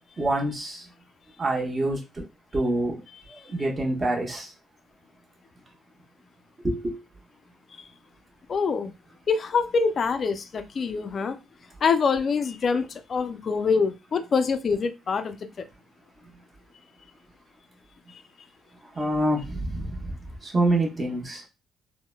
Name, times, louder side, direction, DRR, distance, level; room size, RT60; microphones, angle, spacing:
voice 1, 0.2-0.9 1.4-2.2 2.5-3.0 3.3-4.5 6.6-7.0 18.9-20.1 20.4-21.4, right 1 dB, 30° right, 1.0 m, -26 dB
voice 2, 8.5-8.9 9.3-11.4 11.8-15.4 18.1-18.2, left 5 dB, 50° left, 0.4 m, -25 dB
3.7 x 2.1 x 2.2 m
cardioid pair, 90°, 0 cm